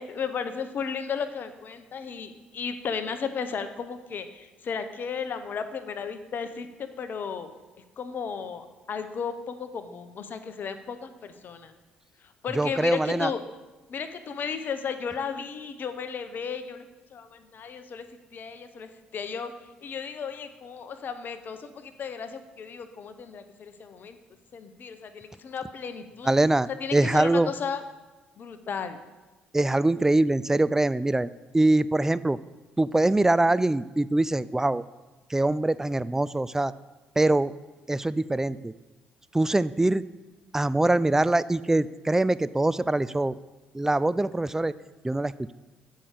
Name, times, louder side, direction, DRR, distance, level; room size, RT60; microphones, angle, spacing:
voice 1, 0.0-7.5 8.0-11.7 12.2-13.4 13.9-18.1 18.3-19.5 19.8-24.2 24.5-26.3 26.8-27.8 28.4-29.0, left 6 dB, 50° left, 9 dB, 0.8 m, -34 dB
voice 2, 12.6-13.3 26.3-27.5 29.5-32.4 32.8-34.8 35.3-36.7 37.2-37.5 37.9-38.7 39.3-40.0 40.5-43.4 43.7-44.7 45.0-45.5, right 2 dB, 10° right, 17 dB, 0.3 m, -23 dB
8.5 x 5.6 x 4.9 m, 1.2 s
hypercardioid pair, 50°, 4 cm